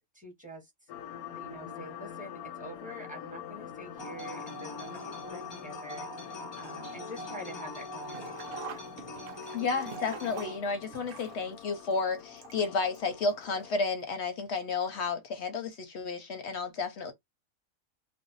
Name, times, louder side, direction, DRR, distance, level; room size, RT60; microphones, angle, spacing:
voice 1, 0.1-0.7 1.3-9.0, equal, 5° right, 0.8 m, -46 dB
sound 1, 0.9-13.9, left 9 dB, 90° left, 1.1 m, -46 dB
sound 2, 4.0-10.6, left 1 dB, 35° left, 0.4 m, -42 dB
Sink (filling or washing), 8.0-13.0 13.3-13.4 14.4-14.5 14.8-14.9, right 7 dB, 60° right, 0.6 m, -46 dB
voice 2, 9.5-17.1, left 4 dB, 65° left, 0.7 m, -32 dB
2.5 x 2.0 x 3.8 m
omnidirectional pair, 1.5 m